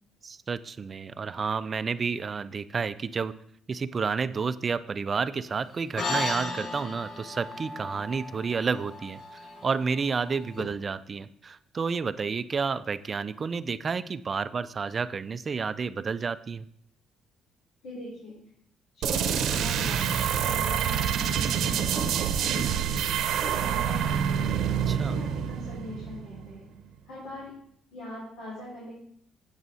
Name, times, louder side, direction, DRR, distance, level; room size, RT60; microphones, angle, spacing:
voice 1, 0.2-3.3 3.7-16.6 24.9-25.1, right 5 dB, 35° right, 14 dB, 0.4 m, -30 dB
sound 1, 6.0-10.6, left 2 dB, 55° left, 1.6 m, -35 dB
voice 2, 17.8-18.3 18.9-23.0 23.4-24.7 24.9-26.7 27.1-27.5 27.9-28.9, left 2 dB, 75° left, -6 dB, 3.3 m, -41 dB
sound 2, 19.0-26.6, right 8 dB, 70° right, 0.8 m, -27 dB
8.0 x 7.7 x 4.1 m, 0.67 s
cardioid pair, 110°, 0 cm